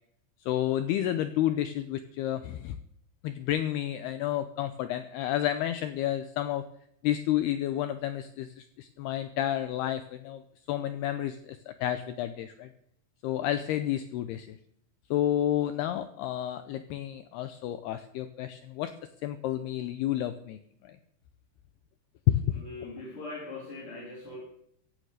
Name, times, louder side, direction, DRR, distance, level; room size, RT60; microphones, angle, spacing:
voice 1, 0.5-2.8 3.2-6.6 7.0-10.4 10.7-12.7 13.2-14.6 15.1-18.9 19.2-20.6 20.8-21.0 22.3-22.4 22.8-22.9, left 12 dB, 90° left, 10 dB, 2.3 m, -30 dB
voice 2, 22.5-24.4, left 3 dB, 30° left, -4 dB, 3.5 m, -41 dB
16.0 x 9.9 x 6.6 m, 0.70 s
omnidirectional pair, 5.5 m